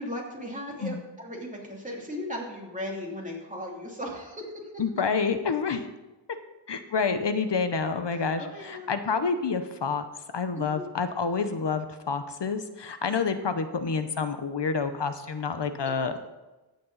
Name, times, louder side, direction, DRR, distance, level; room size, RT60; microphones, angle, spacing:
voice 1, 0.0-4.5 8.1-8.9 10.6-10.8, left 1 dB, 15° right, -2 dB, 2.9 m, -37 dB
voice 2, 4.8-5.8 6.7-10.0 10.3-16.2, left 5 dB, 65° left, 9 dB, 0.9 m, -28 dB
14.5 x 8.5 x 4.1 m, 1.1 s
wide cardioid pair, 70°, 45 cm